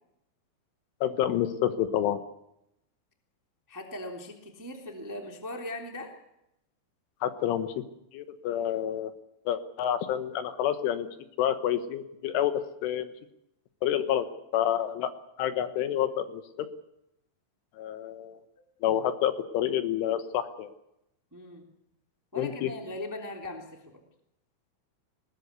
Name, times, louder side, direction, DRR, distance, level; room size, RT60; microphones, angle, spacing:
voice 1, 1.0-2.2 7.2-7.8 8.1-9.1 9.5-11.1 11.4-13.1 13.8-14.3 14.5-15.1 15.4-16.7 17.8-18.4 18.8-20.7 22.4-22.7, left 10 dB, 75° left, 10 dB, 3.5 m, -28 dB
voice 2, 3.7-6.1 21.3-21.7 22.3-24.0, left 1 dB, 10° right, 2 dB, 1.2 m, -39 dB
20.5 x 19.5 x 8.2 m, 0.83 s
omnidirectional pair, 5.9 m